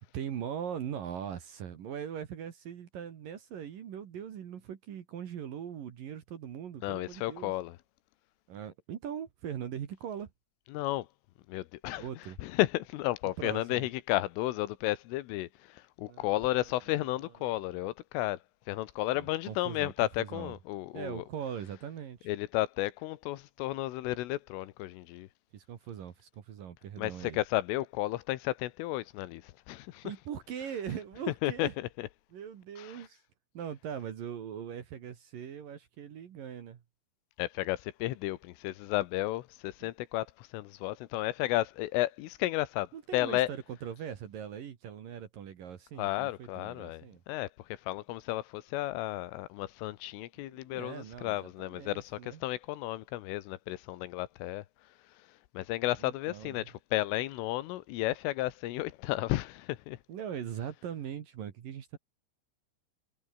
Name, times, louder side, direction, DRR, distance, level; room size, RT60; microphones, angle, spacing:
voice 1, 0.1-7.5 8.5-10.3 12.0-12.4 13.4-13.9 16.0-16.6 17.5-17.6 19.1-19.9 20.2-20.5 20.9-22.3 25.5-27.4 30.0-31.7 32.3-33.2 33.5-36.8 39.8-39.9 42.9-47.2 50.4-52.4 56.0-56.7 60.1-62.0, right 8 dB, 55° right, 2.9 m, -41 dB
voice 2, 6.8-7.8 10.7-11.1 11.5-18.4 18.7-21.3 22.3-25.3 27.0-30.1 31.4-32.1 32.8-33.1 37.4-43.5 46.0-54.6 55.6-60.0, left 17 dB, 85° left, 3.7 m, -33 dB
omnidirectional pair, 5.7 m